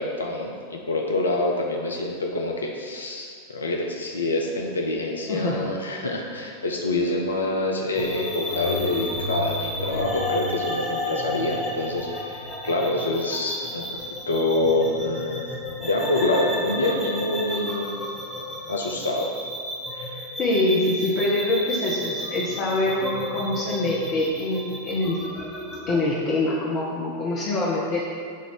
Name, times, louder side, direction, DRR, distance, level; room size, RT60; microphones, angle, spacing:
voice 1, 0.0-14.0 14.3-15.4 15.8-18.0 18.7-19.3 19.9-20.2, left 2 dB, 75° left, 1 dB, 0.5 m, -26 dB
voice 2, 5.3-5.7 20.4-25.2 25.9-28.0, left 2 dB, 35° left, -5 dB, 0.8 m, -25 dB
sound 1, 7.9-26.0, left 1 dB, 20° left, 1.1 m, -32 dB
7.5 x 2.6 x 5.1 m, 2.2 s
figure-of-eight pair, 90°, 0 cm